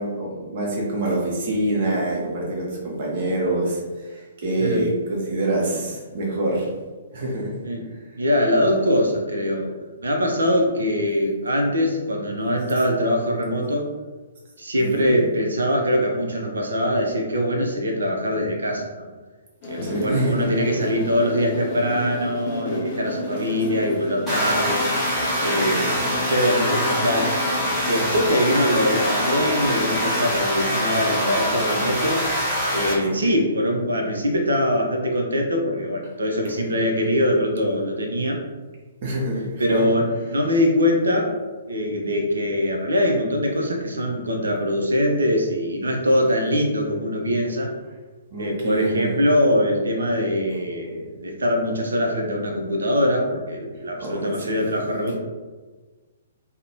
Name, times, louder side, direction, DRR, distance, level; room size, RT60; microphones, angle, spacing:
voice 1, 0.0-6.7 7.1-7.6 14.8-15.2 19.8-20.5 23.3-23.5 25.5-26.2 32.9-33.2 39.0-39.9 48.3-49.1 54.0-54.5, right 1 dB, 45° right, -3 dB, 0.8 m, -26 dB
voice 2, 8.2-13.9 14.6-19.1 19.7-24.9 25.4-27.3 27.8-32.2 32.7-38.4 39.6-41.4 41.7-47.7 48.4-55.2, equal, 70° right, 2 dB, 0.4 m, -23 dB
sound 1, 19.6-30.2, left 2 dB, 35° left, 0.5 m, -32 dB
sound 2, 24.3-32.9, equal, 10° right, 1.2 m, -24 dB
2.5 x 2.0 x 2.7 m, 1.3 s
figure-of-eight pair, 120°, 0 cm